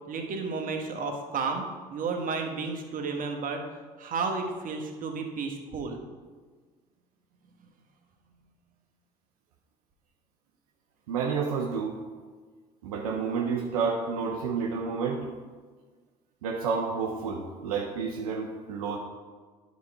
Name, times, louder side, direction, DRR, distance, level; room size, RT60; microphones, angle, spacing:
voice 1, 0.1-3.6 4.0-6.0, right 4 dB, 45° right, 3 dB, 1.3 m, -32 dB
voice 2, 11.1-12.0 12.8-15.3 16.4-19.0, right 5 dB, 80° right, 1 dB, 0.7 m, -30 dB
10.5 x 4.1 x 4.8 m, 1.5 s
hypercardioid pair, 60°, 19 cm